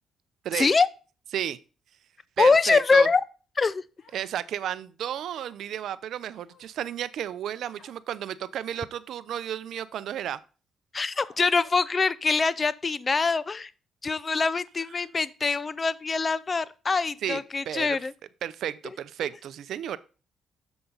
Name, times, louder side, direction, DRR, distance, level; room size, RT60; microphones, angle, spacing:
voice 1, 0.5-0.9 2.4-3.2 3.6-3.8 10.9-13.7 14.0-18.1, left 4 dB, 30° left, 0.5 m, -24 dB
voice 2, 2.4-3.1 4.1-10.4 17.2-17.4 17.7-18.0 18.4-20.0, right 10 dB, 75° right, 0.6 m, -32 dB
Human voice, 4.0-4.6 5.3-5.7 6.3-6.9 7.6-8.0 8.6-9.0 9.7-9.8 11.1-11.7, left 4 dB, 70° left, 4.3 m, -58 dB
7.8 x 7.1 x 3.9 m
cardioid pair, 90°, 0 cm